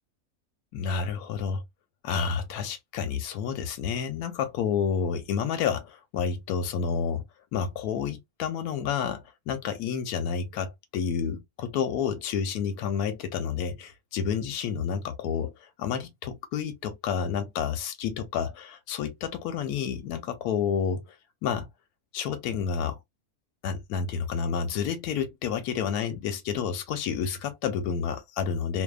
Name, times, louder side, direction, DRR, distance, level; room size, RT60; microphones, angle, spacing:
voice 1, 0.7-1.6 2.0-7.2 7.5-21.2 21.4-21.7 22.1-23.0 23.6-28.8, left 7 dB, 85° left, 1.1 m, -30 dB
2.7 x 2.2 x 2.3 m
omnidirectional pair, 1.6 m